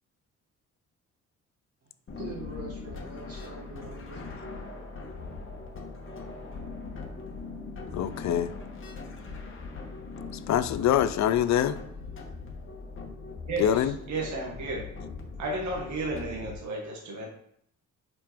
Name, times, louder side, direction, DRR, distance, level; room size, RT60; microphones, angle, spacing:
sound 1, 2.1-16.5, left 3 dB, 40° left, 1.6 m, -40 dB
voice 1, 2.1-4.3, right 2 dB, 50° right, -4 dB, 3.1 m, -43 dB
voice 2, 7.9-8.5 10.5-11.8 13.6-14.0, left 10 dB, 65° left, 14 dB, 0.6 m, -24 dB
voice 3, 13.5-14.8 15.4-17.3, right 2 dB, 65° right, -1 dB, 1.7 m, -33 dB
5.6 x 5.4 x 5.1 m, 0.68 s
cardioid pair, 90°, 30 cm